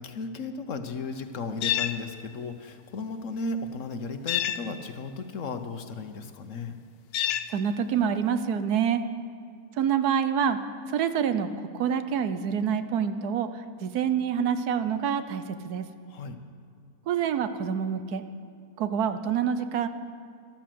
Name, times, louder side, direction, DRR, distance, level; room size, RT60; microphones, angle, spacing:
voice 1, 0.0-6.8 16.1-16.4, left 3 dB, 60° left, 8 dB, 1.2 m, -35 dB
sound 1, 1.6-2.0 4.3-4.6 7.1-7.5, left 12 dB, 90° left, 1.2 m, -27 dB
voice 2, 7.5-9.0 9.8-10.6 10.9-11.5 11.8-13.5 13.8-15.8 17.1-18.2 18.8-19.9, right 8 dB, 85° right, 11 dB, 1.3 m, -26 dB
13.5 x 12.0 x 7.7 m, 2.4 s
omnidirectional pair, 1.6 m